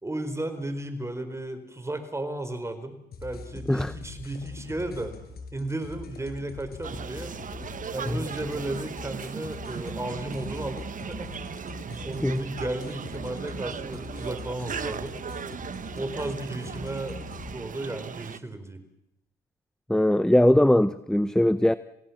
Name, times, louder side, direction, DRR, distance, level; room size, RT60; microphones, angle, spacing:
voice 1, 0.0-5.1 5.5-7.3 7.9-11.3 12.0-15.2 16.0-17.2 17.5-18.8, right 1 dB, 15° right, 4.5 m, -34 dB
sound 1, 3.1-17.5, left 4 dB, 65° left, 5.9 m, -43 dB
sound 2, 6.8-18.4, right 7 dB, 50° right, 1.2 m, -38 dB
voice 2, 19.9-21.7, left 1 dB, 5° left, 0.8 m, -21 dB
29.0 x 17.0 x 7.4 m
cardioid pair, 70°, 17 cm